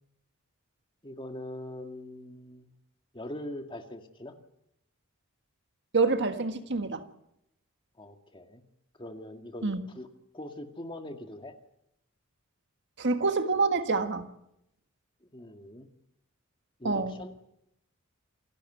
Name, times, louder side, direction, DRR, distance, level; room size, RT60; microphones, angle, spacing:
voice 1, 1.0-2.7 3.1-4.4 8.0-8.6 9.0-10.1 10.3-11.5 15.2-15.9 16.8-17.3, left 1 dB, 25° left, 1.9 m, -42 dB
voice 2, 5.9-7.0 9.6-9.8 13.0-14.3 16.8-17.1, right 3 dB, 55° right, 1.6 m, -27 dB
28.0 x 12.0 x 9.1 m
head